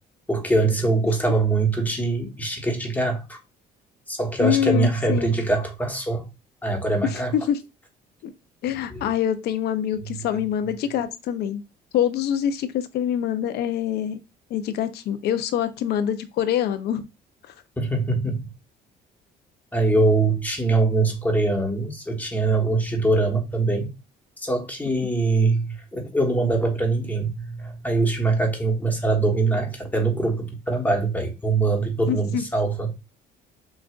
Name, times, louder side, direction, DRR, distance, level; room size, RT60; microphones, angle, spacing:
voice 1, 0.3-3.4 4.1-6.3 6.6-7.3 8.9-9.1 17.8-18.5 19.7-23.9 24.4-32.9, right 3 dB, 10° left, 1.2 m, -23 dB
voice 2, 4.4-5.4 7.0-7.6 8.2-8.3 8.6-11.6 11.9-14.2 14.5-17.0 32.1-32.4, left 10 dB, 75° left, 0.6 m, -25 dB
6.2 x 2.4 x 2.4 m
cardioid pair, 110°, 17 cm